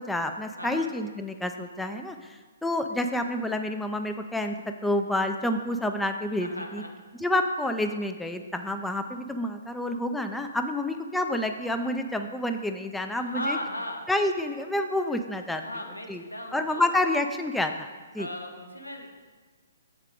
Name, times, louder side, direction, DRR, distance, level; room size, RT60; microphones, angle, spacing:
voice 1, 0.0-6.8 7.2-13.6 14.1-15.6 16.1-16.2 16.5-17.9 18.1-18.3, left 1 dB, 5° left, 6 dB, 0.3 m, -29 dB
voice 2, 0.6-0.9 6.4-6.9 13.2-14.0 15.6-16.9 18.2-19.1, left 1 dB, 90° left, 3 dB, 1.0 m, -36 dB
7.3 x 5.3 x 4.7 m, 1.4 s
figure-of-eight pair, 125°, 0 cm